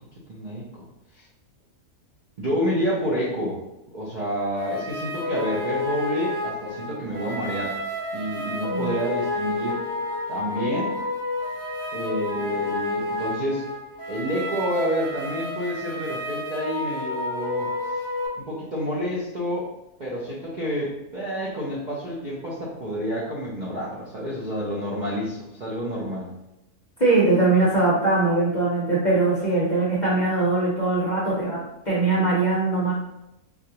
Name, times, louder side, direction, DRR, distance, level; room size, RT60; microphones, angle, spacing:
voice 1, 0.3-0.9 1.1-1.2 2.4-3.6 3.9-7.8 8.1-9.8 10.3-10.9 11.9-13.6 14.1-17.7 18.4-19.7 20.0-26.3, equal, 50° right, -7 dB, 0.5 m, -29 dB
sound 1, 4.6-18.3, left 2 dB, 90° right, 1.7 m, -30 dB
voice 2, 27.0-31.6 31.8-32.9, right 3 dB, 40° left, -6 dB, 0.7 m, -21 dB
4.1 x 2.4 x 2.8 m, 0.88 s
omnidirectional pair, 1.6 m